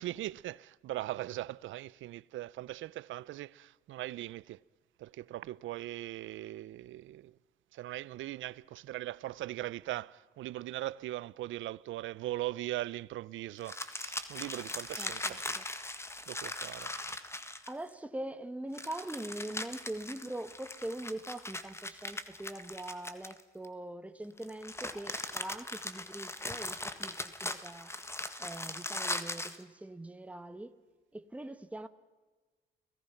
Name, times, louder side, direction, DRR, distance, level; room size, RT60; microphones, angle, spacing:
voice 1, 0.0-4.6 5.0-7.4 7.7-15.6 16.3-16.9, right 15 dB, 80° right, 0.6 m, -40 dB
sound 1, 13.6-17.9 18.7-23.7 24.4-29.6, left 2 dB, 15° left, 1.7 m, -40 dB
voice 2, 15.0-15.6 17.7-27.9 28.4-30.7 31.1-31.9, right 1 dB, 5° right, 1.2 m, -42 dB
29.5 x 18.0 x 5.9 m
cardioid pair, 90°, 20 cm